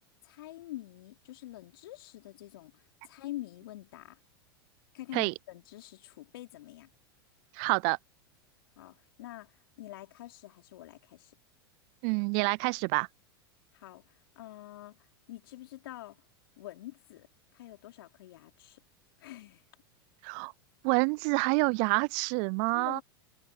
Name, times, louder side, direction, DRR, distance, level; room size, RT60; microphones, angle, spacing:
voice 1, 0.2-4.2 4.9-6.9 8.8-11.3 13.7-16.2 16.6-17.3 17.5-18.8 19.2-19.6 22.7-23.0, left 15 dB, 65° left, 3.4 m, -46 dB
voice 2, 7.6-8.0 12.0-13.1 20.2-20.5 20.8-23.0, right 37 dB, 50° right, 0.5 m, -27 dB
hypercardioid pair, 90°, 13 cm